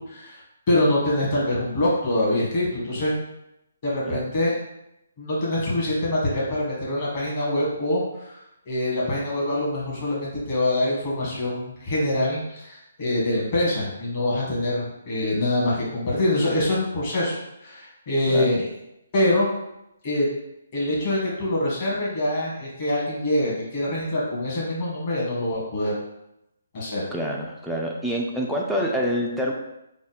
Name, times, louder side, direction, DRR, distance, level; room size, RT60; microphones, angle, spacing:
voice 1, 0.1-0.4 0.7-3.2 3.8-4.5 5.2-8.4 8.6-18.7 19.1-19.5 20.0-20.3 20.7-25.9 26.7-27.0, left 1 dB, 35° left, -6 dB, 1.3 m, -24 dB
voice 2, 27.1-29.5, equal, ahead, -3 dB, 0.3 m, -26 dB
3.6 x 2.1 x 4.0 m, 0.85 s
hypercardioid pair, 165°, 0 cm